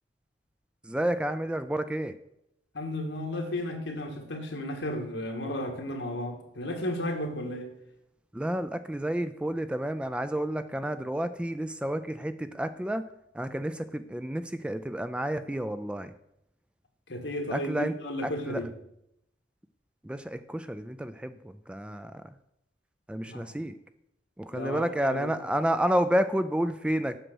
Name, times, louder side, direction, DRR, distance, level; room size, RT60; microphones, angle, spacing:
voice 1, 0.8-2.1 8.3-13.1 13.3-16.1 17.5-17.9 18.2-18.7 20.0-22.4 23.1-23.8 24.4-27.2, right 1 dB, 5° right, 11 dB, 0.3 m, -30 dB
voice 2, 2.7-7.7 17.1-18.6 23.2-23.4 24.5-25.4, left 1 dB, 75° left, 3 dB, 1.7 m, -34 dB
7.8 x 6.5 x 6.1 m, 0.81 s
head